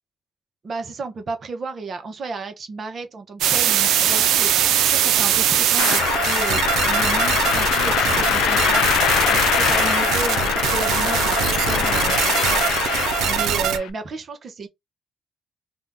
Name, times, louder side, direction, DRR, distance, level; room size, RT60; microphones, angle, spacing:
voice 1, 0.6-6.6 6.9-14.7, right 3 dB, 50° right, 0.8 m, -33 dB
sound 1, 3.4-13.8, right 9 dB, 85° right, 0.4 m, -21 dB
sound 2, 5.8-13.9, left 10 dB, 90° left, 0.3 m, -22 dB
2.7 x 2.2 x 3.4 m
cardioid pair, 90°, 0 cm